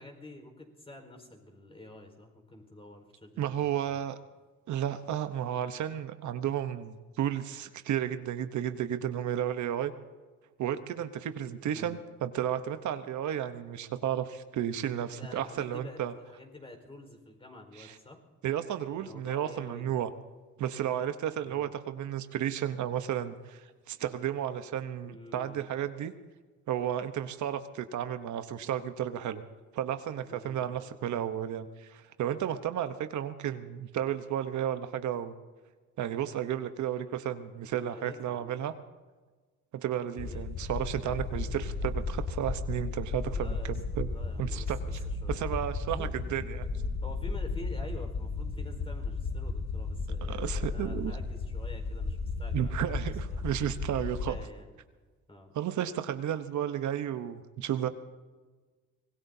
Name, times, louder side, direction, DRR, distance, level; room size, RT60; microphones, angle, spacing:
voice 1, 0.0-4.0 11.6-12.0 15.1-18.2 19.0-20.0 21.4-21.8 25.0-25.6 30.2-30.9 37.8-38.5 40.1-40.5 43.3-45.5 45.9-53.4 54.3-54.8 55.3-55.5, left 1 dB, 20° left, 3 dB, 4.6 m, -49 dB
voice 2, 3.4-4.2 4.7-9.9 10.6-16.1 17.8-17.9 18.4-20.1 20.6-26.1 26.7-29.4 29.7-35.3 36.0-38.7 39.8-44.1 44.4-45.0 45.3-46.6 50.3-51.1 52.5-54.4 55.5-57.9, right 10 dB, 70° right, 9 dB, 1.0 m, -33 dB
sound 1, 40.2-54.3, left 3 dB, 60° left, 2.1 m, -34 dB
25.0 x 20.0 x 2.8 m, 1.3 s
cardioid pair, 90°, 30 cm